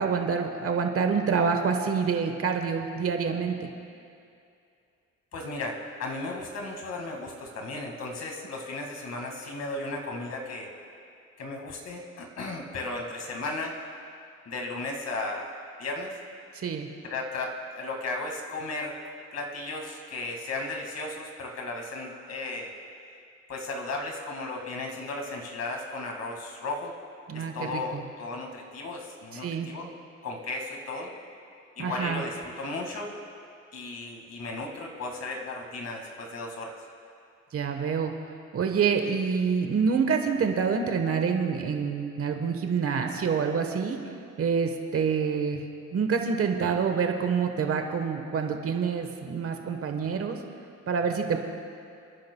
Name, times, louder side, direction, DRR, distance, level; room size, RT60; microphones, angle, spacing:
voice 1, 0.0-3.7 16.5-16.9 27.3-28.0 29.3-29.7 31.8-32.2 37.5-38.1 38.5-44.0 44.4-45.6 45.9-50.4 50.9-51.4, right 6 dB, 50° right, 5 dB, 1.2 m, -27 dB
voice 2, 5.3-10.7 11.4-13.7 14.5-15.5 15.8-16.2 17.0-19.0 19.3-22.7 23.5-26.9 27.3-29.9 30.2-31.1 31.8-33.1 33.7-36.7, left 2 dB, 60° left, 1 dB, 2.0 m, -35 dB
30.0 x 10.5 x 2.3 m, 2.4 s
cardioid pair, 90°, 30 cm